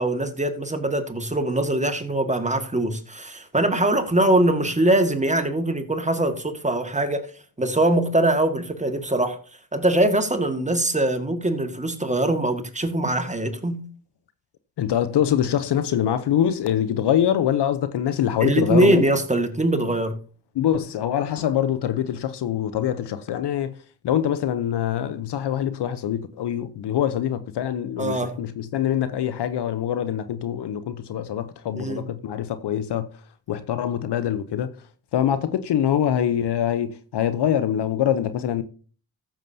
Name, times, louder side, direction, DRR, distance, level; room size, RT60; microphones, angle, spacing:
voice 1, 0.0-7.3 7.6-9.4 9.7-13.8 18.4-20.2 28.0-28.4 31.7-32.0, right 1 dB, 15° right, 1.9 m, -22 dB
voice 2, 14.8-19.0 20.5-23.8 24.0-33.1 33.5-34.7 35.1-38.6, left 10 dB, 60° left, 0.9 m, -24 dB
14.5 x 7.3 x 2.8 m
supercardioid pair, 50°, 46 cm